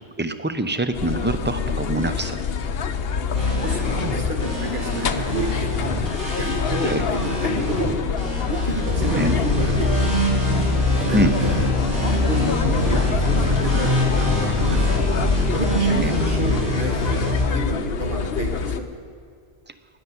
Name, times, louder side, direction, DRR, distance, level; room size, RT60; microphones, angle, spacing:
voice 1, 0.2-2.4 6.8-7.1 9.0-9.4 11.1-11.3 15.9-16.1, right 1 dB, 15° right, 10 dB, 0.5 m, -24 dB
sound 1, 0.9-18.8, left 6 dB, 65° left, 0.9 m, -26 dB
sound 2, 3.3-17.4, left 1 dB, 35° right, 3.5 m, -24 dB
voice 2, 3.4-5.9 6.4-8.0 8.5-10.3 10.8-11.7 12.0-15.0 15.3-18.9, right 2 dB, 50° right, 3 dB, 1.8 m, -30 dB
13.0 x 9.1 x 9.6 m, 2.2 s
omnidirectional pair, 1.1 m